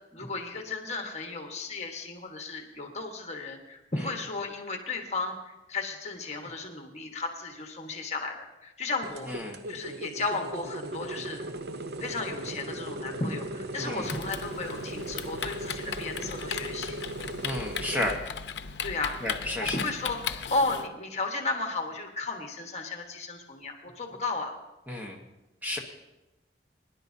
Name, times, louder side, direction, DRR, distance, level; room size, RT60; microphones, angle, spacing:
voice 1, 0.1-11.4 12.0-17.0 18.8-19.1 19.6-24.5, left 3 dB, 40° left, 3 dB, 1.3 m, -34 dB
sound 1, 9.0-18.2, right 1 dB, 65° right, 0.6 m, -38 dB
voice 2, 9.3-9.6 13.8-14.1 17.4-18.2 19.2-19.8 24.9-25.2 25.6-25.8, left 1 dB, 10° right, 1 dB, 1.1 m, -32 dB
Typing, 14.0-20.9, left 7 dB, 85° left, 0.6 m, -37 dB
22.5 x 10.5 x 2.7 m, 1.0 s
head